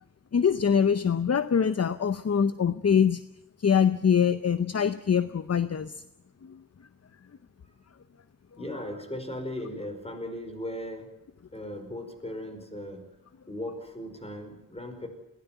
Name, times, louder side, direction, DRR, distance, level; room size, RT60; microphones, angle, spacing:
voice 1, 0.3-3.2 3.6-6.0 6.4-6.6, left 7 dB, 50° left, 13 dB, 0.7 m, -24 dB
voice 2, 8.6-11.1 11.5-13.0 13.5-15.1, left 1 dB, 20° left, 6 dB, 5.0 m, -37 dB
22.0 x 16.5 x 9.2 m, 0.91 s
wide cardioid pair, 110°, 33 cm